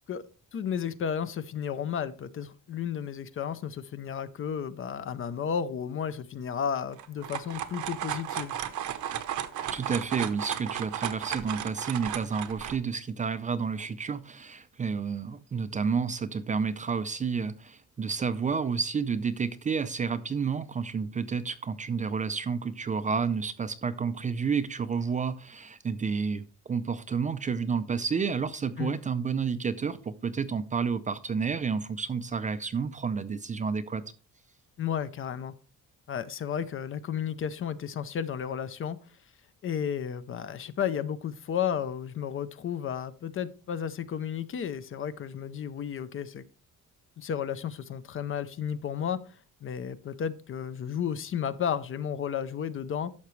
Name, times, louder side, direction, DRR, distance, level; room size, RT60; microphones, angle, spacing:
voice 1, 0.5-8.6 28.8-29.0 34.8-35.5 36.1-39.0 39.6-46.4 47.2-49.2 49.6-53.1, left 8 dB, 40° left, 14 dB, 0.6 m, -33 dB
sound 1, 6.9-12.8, right 10 dB, 65° right, 0.9 m, -34 dB
voice 2, 9.7-34.0, right 5 dB, 25° right, 12 dB, 0.4 m, -30 dB
11.5 x 6.9 x 3.1 m, 0.37 s
cardioid pair, 160°, 32 cm